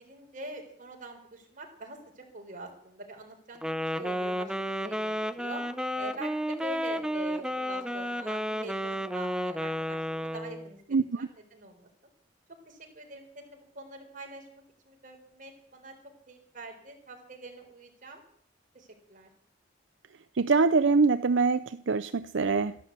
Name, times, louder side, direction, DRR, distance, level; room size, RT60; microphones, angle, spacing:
voice 1, 0.0-3.6 3.9-5.6 5.9-10.8 11.1-11.9 12.7-15.9 16.3-18.2 18.7-19.3, right 2 dB, 45° right, 2 dB, 4.3 m, -44 dB
Wind instrument woodwind instrument, 3.6-10.7, equal, 5° right, 0.7 m, -32 dB
voice 2, 10.9-11.3 20.4-22.8, right 4 dB, 75° right, 12 dB, 0.6 m, -24 dB
13.5 x 12.0 x 8.2 m, 0.63 s
head